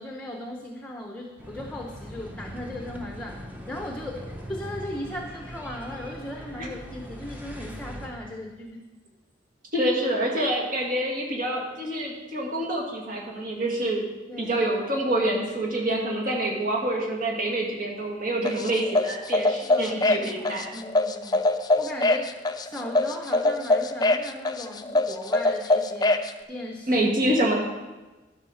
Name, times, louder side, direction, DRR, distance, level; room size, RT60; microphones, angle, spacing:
voice 1, 0.0-4.2 4.5-8.9 14.3-14.6 19.6-21.5 21.8-22.3 22.6-27.0, left 1 dB, 5° left, 1 dB, 0.8 m, -37 dB
sound 1, 1.4-8.1, equal, 10° right, 1.0 m, -40 dB
voice 2, 9.7-14.0 14.4-20.7 26.9-27.5, right 1 dB, 50° right, -1 dB, 2.1 m, -26 dB
sound 2, 18.5-26.3, left 2 dB, 25° left, 0.4 m, -23 dB
12.5 x 5.6 x 5.6 m, 1.2 s
head